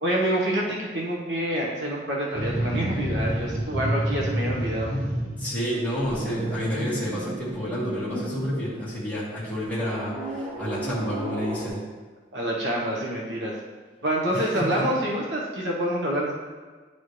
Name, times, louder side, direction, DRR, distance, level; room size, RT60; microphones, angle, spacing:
voice 1, 0.0-4.9 8.1-8.2 12.3-13.5 14.0-16.3, right 1 dB, 80° right, -3 dB, 1.1 m, -27 dB
sound 1, 2.3-5.5 5.8-8.9 9.7-11.7, right 1 dB, 30° right, 2.2 m, -30 dB
voice 2, 5.4-11.8 14.3-14.8, equal, 10° left, -9 dB, 2.0 m, -30 dB
10.5 x 4.2 x 3.2 m, 1.4 s
head